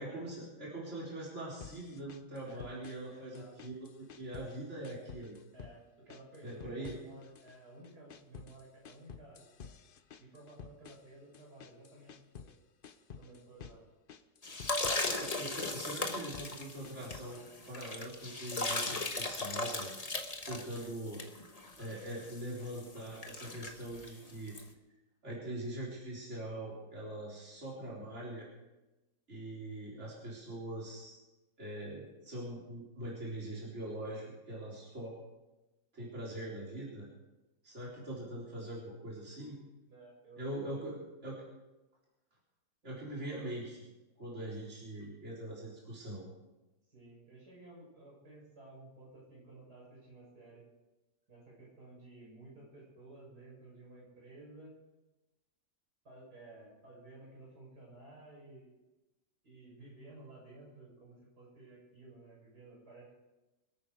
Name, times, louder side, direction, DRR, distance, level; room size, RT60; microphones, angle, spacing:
voice 1, 0.0-5.4 6.4-6.9 15.0-19.9 20.5-21.2 21.8-24.5 25.2-28.5 29.3-31.2 31.6-35.1 35.9-37.1 37.6-39.6 40.4-41.0 41.2-41.4 42.8-43.8 44.2-46.2, right 1 dB, 45° right, -6 dB, 4.4 m, -42 dB
sound 1, 1.6-3.1 3.3-4.6 4.8-5.8 6.1-7.6 7.8-12.6 12.8-13.8 14.1-15.5 15.8-17.5, left 7 dB, 50° left, 0.7 m, -51 dB
voice 2, 2.5-2.8 3.1-3.6 5.5-9.4 10.2-12.1 12.4-12.5 13.2-13.8 15.3-15.7 20.7-20.9 39.9-40.9 46.9-50.6 51.3-54.7 56.0-58.7 59.4-63.2, right 2 dB, 85° right, -4 dB, 7.3 m, -54 dB
sound 2, 14.4-24.6, left 2 dB, 25° left, 1.2 m, -37 dB
25.5 x 9.1 x 4.9 m, 1.1 s
omnidirectional pair, 1.7 m